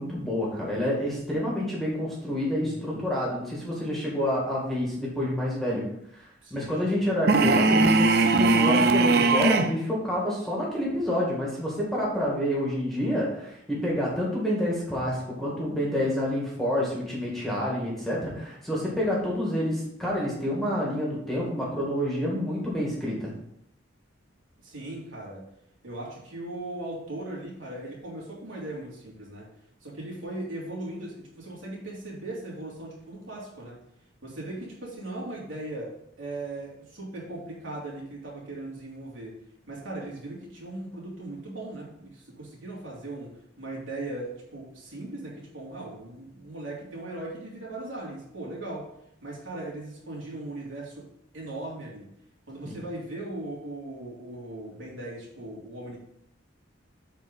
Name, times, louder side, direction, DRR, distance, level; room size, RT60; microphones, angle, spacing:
voice 1, 0.0-5.8 6.1-6.2 6.5-23.3 52.6-52.8, equal, ahead, -5 dB, 2.2 m, -28 dB
voice 2, 2.6-3.0 6.4-7.1 24.6-25.4 25.8-29.5 29.8-33.8 34.2-39.4 39.7-48.9 49.2-51.1 51.3-52.1 52.5-56.0, right 2 dB, 75° right, -4 dB, 3.2 m, -38 dB
sound 1, 7.3-9.8, right 3 dB, 50° right, 0.6 m, -20 dB
7.7 x 4.7 x 5.6 m, 0.75 s
head